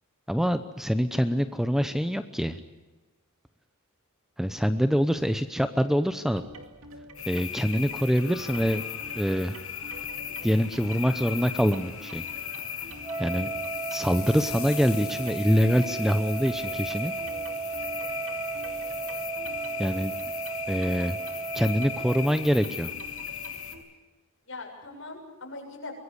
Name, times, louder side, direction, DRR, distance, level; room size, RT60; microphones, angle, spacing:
voice 1, 0.3-2.6 4.4-6.4 7.3-8.8 9.2-9.6 10.4-12.2 13.2-13.5 13.9-17.1 19.8-20.1 20.7-21.2 21.5-22.9, equal, ahead, 10 dB, 0.8 m, -25 dB
sound 1, 6.4-23.8, right 1 dB, 75° right, 2.3 m, -47 dB
sound 2, 7.1-23.7, left 8 dB, 90° left, 6.5 m, -37 dB
Wind instrument woodwind instrument, 13.0-22.4, right 5 dB, 20° right, 2.1 m, -35 dB
voice 2, 17.2-17.6 24.5-25.9, left 3 dB, 65° left, 1 dB, 7.3 m, -42 dB
24.0 x 21.0 x 8.2 m, 1.2 s
head